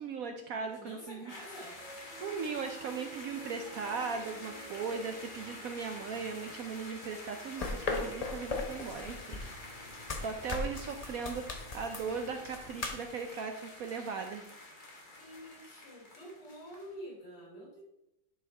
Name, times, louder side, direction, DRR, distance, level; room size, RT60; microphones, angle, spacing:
voice 1, 0.0-1.3 2.2-9.4 10.2-14.5, right 5 dB, 70° right, 5 dB, 0.9 m, -38 dB
voice 2, 0.7-1.8 15.1-17.8, equal, 70° left, -2 dB, 3.9 m, -48 dB
sound 1, 1.3-16.9, left 2 dB, 30° left, 1.3 m, -48 dB
Piano, 1.7-12.2, right 5 dB, 45° right, 1.0 m, -54 dB
sound 2, 7.6-13.0, left 3 dB, 55° left, 0.4 m, -38 dB
11.0 x 4.7 x 3.3 m, 0.84 s
omnidirectional pair, 1.9 m